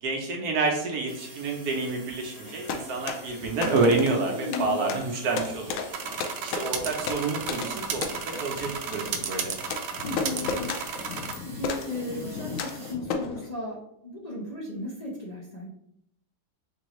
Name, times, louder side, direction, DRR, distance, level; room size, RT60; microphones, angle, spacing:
voice 1, 0.0-5.8 6.4-9.6, right 3 dB, 70° right, 1 dB, 1.3 m, -28 dB
sound 1, 1.1-12.9, right 2 dB, 40° right, 0.9 m, -47 dB
sound 2, 2.4-13.5, left 5 dB, 70° left, 0.8 m, -35 dB
voice 2, 4.3-4.8 10.0-10.8 11.4-15.7, left 2 dB, 30° left, -6 dB, 0.7 m, -35 dB
sound 3, 5.9-11.4, right 6 dB, 85° right, 0.5 m, -34 dB
5.4 x 2.7 x 3.0 m, 0.75 s
omnidirectional pair, 1.7 m